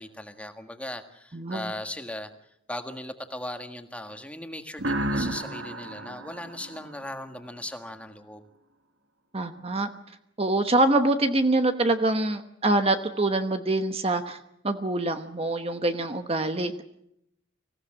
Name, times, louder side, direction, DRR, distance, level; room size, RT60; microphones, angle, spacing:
voice 1, 0.0-2.3 2.7-8.5, left 1 dB, 5° left, 6 dB, 1.6 m, -38 dB
voice 2, 1.3-1.7 9.3-9.9 10.4-14.4 14.6-16.8, right 2 dB, 30° right, 8 dB, 1.1 m, -25 dB
sound 1, 4.8-7.5, right 1 dB, 65° right, 1.5 m, -32 dB
25.0 x 16.5 x 8.8 m, 0.77 s
head